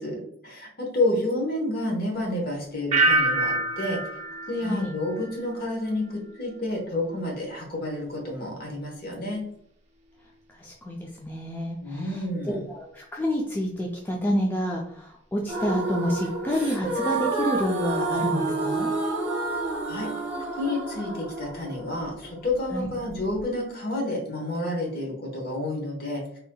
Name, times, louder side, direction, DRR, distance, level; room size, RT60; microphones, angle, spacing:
voice 1, 0.0-4.0 4.5-9.4 11.8-12.5 19.9-20.1 20.6-26.2, left 1 dB, 50° left, 0 dB, 1.1 m, -29 dB
sound 1, 2.9-5.8 6.1-6.6, right 2 dB, 35° right, 0.6 m, -26 dB
voice 2, 4.6-4.9 10.5-18.9 22.7-22.9, equal, 10° left, -1 dB, 0.3 m, -29 dB
sound 2, 15.5-23.4, right 2 dB, 10° right, 1.0 m, -29 dB
4.0 x 2.7 x 2.2 m, 0.70 s
head